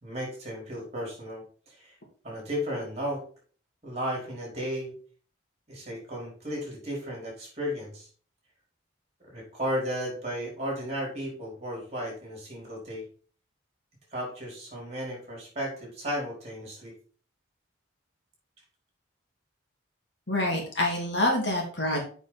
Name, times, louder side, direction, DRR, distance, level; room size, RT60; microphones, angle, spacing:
voice 1, 0.0-2.0 2.2-3.2 3.8-4.9 5.7-8.1 9.3-13.1 14.1-16.9, equal, 30° right, -2 dB, 4.6 m, -34 dB
voice 2, 20.3-22.0, left 1 dB, 60° left, 0 dB, 2.7 m, -26 dB
7.2 x 6.0 x 4.2 m, 0.43 s
head